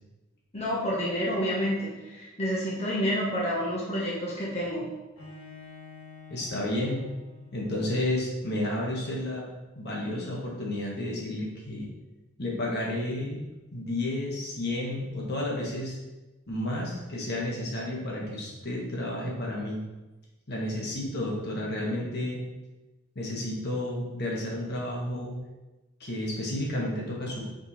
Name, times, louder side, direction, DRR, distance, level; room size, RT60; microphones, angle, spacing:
voice 1, 0.5-4.9, equal, 30° left, -6 dB, 1.3 m, -29 dB
Bowed string instrument, 5.2-8.1, left 5 dB, 70° left, 1.9 m, -48 dB
voice 2, 6.3-7.1 7.5-9.4 9.7-11.9 12.4-13.4 13.7-16.0 16.5-19.8 20.5-22.4 23.1-25.4 26.0-27.4, left 1 dB, 55° left, -3 dB, 1.5 m, -31 dB
5.3 x 4.7 x 4.2 m, 1.1 s
head